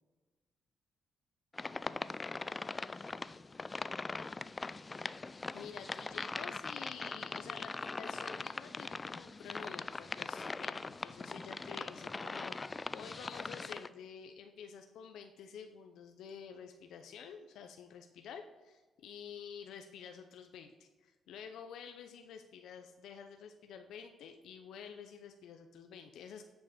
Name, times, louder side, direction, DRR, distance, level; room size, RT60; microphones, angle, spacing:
sound 1, 1.5-13.9, left 3 dB, 25° left, 0.3 m, -41 dB
voice 1, 5.5-26.4, left 7 dB, 80° left, 6 dB, 0.6 m, -50 dB
9.7 x 5.5 x 5.0 m, 1.3 s
cardioid pair, 90°, 0 cm